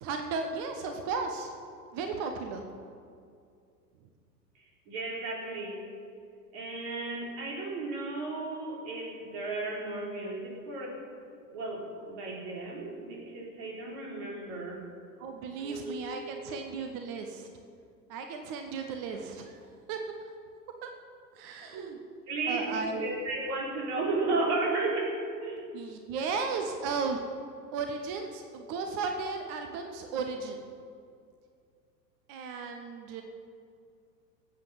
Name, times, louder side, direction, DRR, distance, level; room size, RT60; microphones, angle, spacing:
voice 1, 0.0-1.5 1.9-2.6 15.2-17.5 18.1-19.6 19.9-20.0 20.8-20.9 21.4-22.0 22.5-23.1 25.7-27.2 27.7-30.6 32.3-33.2, right 4 dB, 15° right, 5 dB, 0.3 m, -35 dB
voice 2, 4.9-5.8 6.5-11.0 11.5-14.8 15.6-16.5 21.7-22.0 22.3-25.6, right 3 dB, 45° right, -3 dB, 4.6 m, -34 dB
18.0 x 7.8 x 6.9 m, 2.3 s
figure-of-eight pair, 95°, 49 cm